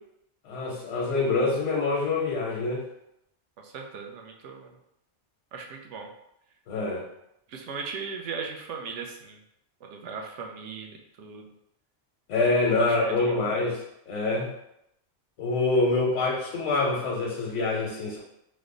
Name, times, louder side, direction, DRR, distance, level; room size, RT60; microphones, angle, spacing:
voice 1, 0.5-2.8 6.7-7.0 12.3-13.8 14.1-14.5 15.4-18.2, left 3 dB, 90° left, -2 dB, 1.0 m, -25 dB
voice 2, 3.6-4.7 5.5-6.1 7.5-9.4 9.8-11.5 12.8-13.4, right 5 dB, 80° right, 2 dB, 0.9 m, -38 dB
3.2 x 2.0 x 3.7 m, 0.79 s
omnidirectional pair, 1.2 m